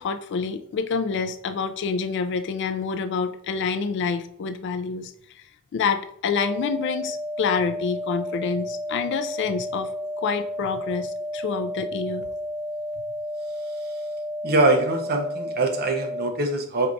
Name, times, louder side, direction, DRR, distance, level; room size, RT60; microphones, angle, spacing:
voice 1, 0.0-5.4 5.7-9.9 10.2-12.3, left 5 dB, 55° left, 9 dB, 0.3 m, -27 dB
sound 1, 6.3-16.3, equal, 20° right, 1.5 m, -32 dB
voice 2, 13.7-14.0 14.4-16.9, right 2 dB, 45° right, 4 dB, 0.6 m, -24 dB
4.6 x 2.3 x 3.8 m, 0.69 s
head